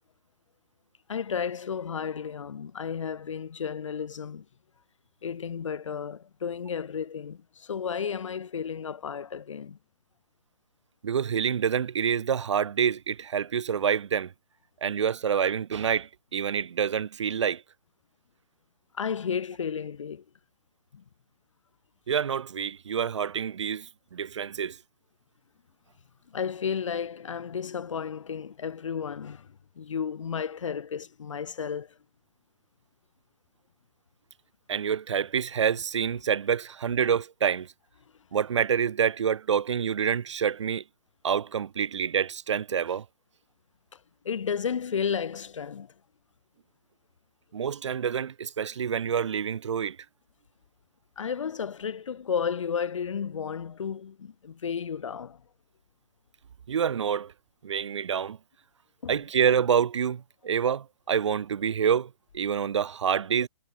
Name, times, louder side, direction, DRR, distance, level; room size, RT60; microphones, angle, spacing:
voice 1, 1.1-4.5 5.2-9.8 18.9-20.2 20.9-21.0 26.3-31.9 44.2-45.9 51.2-55.4 59.0-59.2, left 7 dB, 70° left, 0.7 m, -33 dB
voice 2, 11.0-14.3 14.8-17.6 22.1-24.8 34.7-37.7 38.3-40.8 41.2-43.0 47.5-50.0 56.7-57.3 57.6-58.4 59.1-63.5, right 7 dB, 60° right, 1.1 m, -27 dB
figure-of-eight pair, 130°, 17 cm